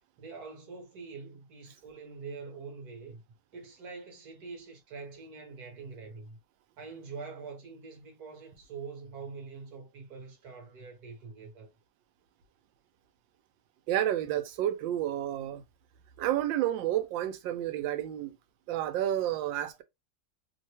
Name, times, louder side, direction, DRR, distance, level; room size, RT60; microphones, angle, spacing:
voice 1, 0.2-3.2 3.5-6.4 6.8-11.7, right 4 dB, 60° right, 1.3 m, -44 dB
voice 2, 13.9-15.6 16.2-18.4 18.7-19.8, right 12 dB, 85° right, 1.3 m, -30 dB
3.2 x 2.2 x 2.8 m
omnidirectional pair, 2.0 m